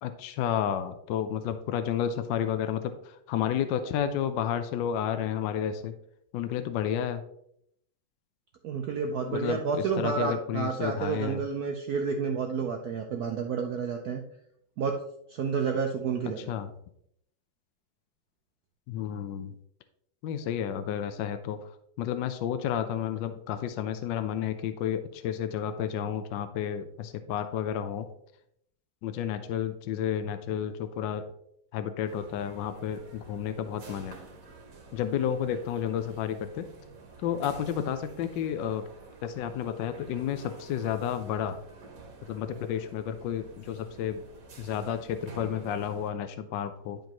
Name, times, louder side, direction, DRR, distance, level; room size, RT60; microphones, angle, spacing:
voice 1, 0.0-5.9 6.3-7.2 9.3-11.5 16.4-16.7 18.9-19.5 20.2-28.1 29.0-31.2 31.7-34.2 34.9-36.7 37.2-38.9 39.2-41.6 42.3-44.2 44.6-47.0, left 9 dB, 75° left, 9 dB, 1.2 m, -31 dB
voice 2, 8.6-14.2 14.8-15.0 15.3-16.5, right 5 dB, 65° right, 3 dB, 1.0 m, -30 dB
sound 1, 32.1-46.1, right 3 dB, 50° right, 1.5 m, -49 dB
10.5 x 5.2 x 2.9 m, 0.72 s
omnidirectional pair, 2.1 m